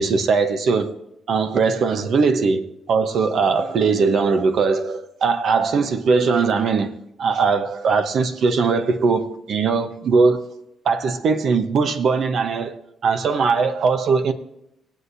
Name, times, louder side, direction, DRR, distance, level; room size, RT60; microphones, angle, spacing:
voice 1, 0.0-0.9 1.3-10.4 10.8-14.3, right 4 dB, 60° right, 1.0 m, -20 dB
20.5 x 8.2 x 2.7 m
cardioid pair, 90°, 0 cm